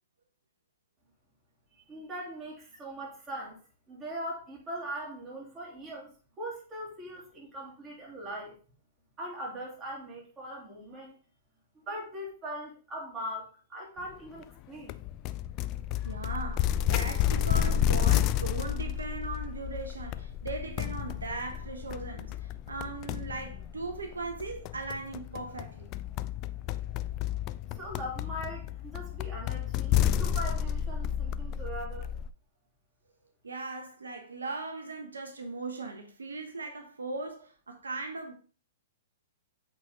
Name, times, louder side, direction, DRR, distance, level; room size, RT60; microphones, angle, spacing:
voice 1, 1.8-3.6 3.9-6.1 6.4-8.6 9.2-11.1 11.9-15.0 27.7-32.1, equal, 20° right, 3.0 m, -40 dB
sound 1, 14.9-32.3, left 10 dB, 35° left, 0.4 m, -31 dB
voice 2, 16.0-25.9 33.4-38.3, right 3 dB, 90° right, 1.1 m, -38 dB
8.2 x 4.2 x 3.6 m
hypercardioid pair, 120°, 0 cm